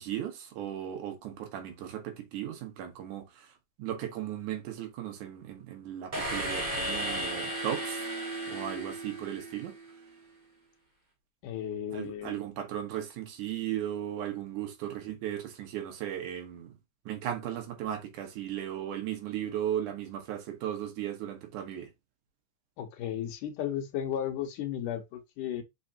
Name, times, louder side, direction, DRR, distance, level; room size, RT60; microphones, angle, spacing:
voice 1, 0.0-3.5 3.8-8.1 8.5-9.7 11.9-16.7 17.1-21.9, right 11 dB, 75° right, 2.8 m, -36 dB
sound 1, 6.1-10.0, right 1 dB, 20° right, 1.5 m, -35 dB
voice 2, 11.4-12.4 22.8-25.6, left 10 dB, 85° left, 2.7 m, -34 dB
6.2 x 5.6 x 2.8 m
omnidirectional pair, 3.6 m